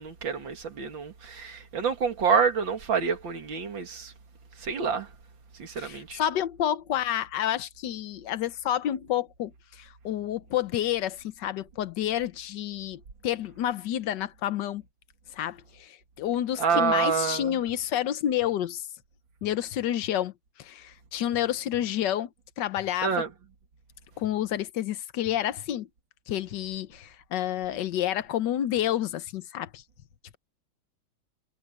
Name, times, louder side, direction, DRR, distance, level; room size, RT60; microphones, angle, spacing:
voice 1, 0.0-4.1 4.6-5.1 5.6-6.2 16.6-17.6 23.0-23.3, right 6 dB, 65° right, 2.8 m, -27 dB
voice 2, 5.8-14.8 15.3-18.9 19.4-20.3 20.6-22.3 22.6-23.1 24.2-25.9 26.3-29.8, left 11 dB, 65° left, 1.4 m, -29 dB
omnidirectional pair, 2.2 m